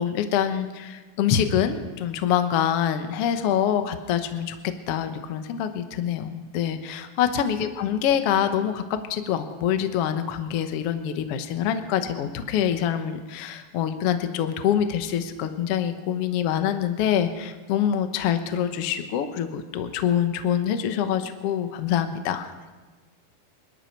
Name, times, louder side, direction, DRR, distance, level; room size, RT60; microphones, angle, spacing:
voice 1, 0.0-4.5 4.9-8.8 9.1-22.5, left 9 dB, 70° left, 8 dB, 1.4 m, -25 dB
26.0 x 12.0 x 4.5 m, 1.3 s
omnidirectional pair, 4.1 m